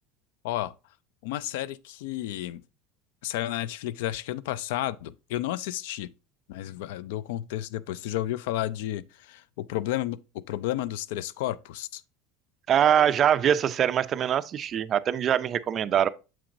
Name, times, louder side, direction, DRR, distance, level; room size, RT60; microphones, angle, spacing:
voice 1, 1.2-2.6 3.2-6.1 6.5-12.0, left 14 dB, 75° left, 0.3 m, -32 dB
voice 2, 12.7-16.1, right 9 dB, 30° right, 0.3 m, -23 dB
7.1 x 5.8 x 2.6 m
cardioid pair, 165°, 0 cm